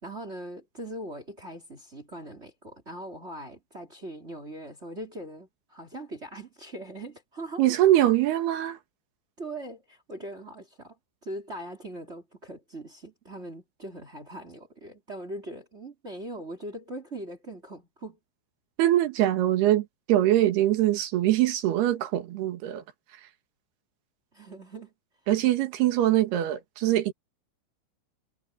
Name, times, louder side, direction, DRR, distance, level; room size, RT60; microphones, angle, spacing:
voice 1, 0.0-7.7 9.4-18.2 24.3-24.9, right 1 dB, 20° right, 1.8 m, -41 dB
voice 2, 7.6-8.8 18.8-22.8 25.3-27.1, right 13 dB, 65° right, 3.4 m, -23 dB
omnidirectional pair, 5.7 m